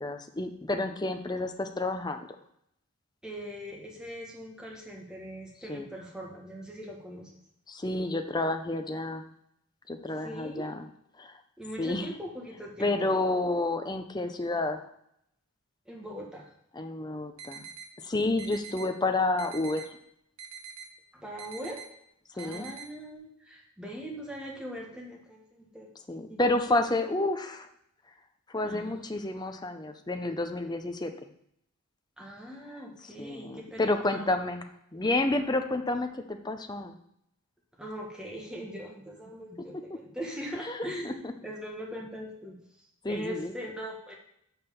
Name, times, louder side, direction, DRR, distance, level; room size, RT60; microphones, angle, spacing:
voice 1, 0.0-2.3 5.7-5.9 7.7-9.2 9.9-10.9 11.2-11.4 11.8-12.1 12.8-14.9 16.7-17.7 18.0-20.0 22.4-22.6 26.1-27.7 28.5-31.1 33.2-34.6 34.9-37.0 40.6-41.3 43.0-43.5, left 2 dB, 20° left, 6 dB, 0.7 m, -30 dB
voice 2, 3.2-7.3 10.2-10.7 11.6-13.1 15.8-16.5 21.1-21.8 22.3-25.9 26.3-26.4 26.7-26.8 28.6-29.1 32.2-34.2 35.3-35.5 37.8-42.5 43.0-44.1, equal, 5° right, -2 dB, 1.7 m, -41 dB
sound 1, 17.4-17.9 18.4-18.9 19.4-19.9 20.4-20.9 21.4-21.9 22.4-22.9, right 7 dB, 80° right, 1.1 m, -44 dB
6.2 x 5.6 x 6.9 m, 0.75 s
head